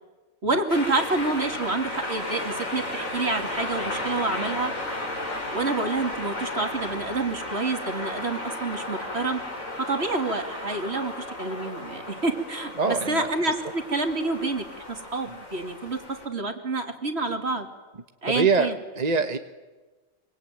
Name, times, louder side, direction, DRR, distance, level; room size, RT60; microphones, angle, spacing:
voice 1, 0.4-4.7 5.5-9.4 9.8-17.7 18.2-18.8, right 3 dB, 50° right, 5 dB, 3.0 m, -28 dB
sound 1, 0.7-16.3, left 1 dB, 80° left, 5.3 m, -34 dB
voice 2, 12.8-13.3 15.3-15.4 18.3-19.4, right 4 dB, 35° right, 7 dB, 1.1 m, -24 dB
25.0 x 24.5 x 9.2 m, 1.3 s
omnidirectional pair, 1.4 m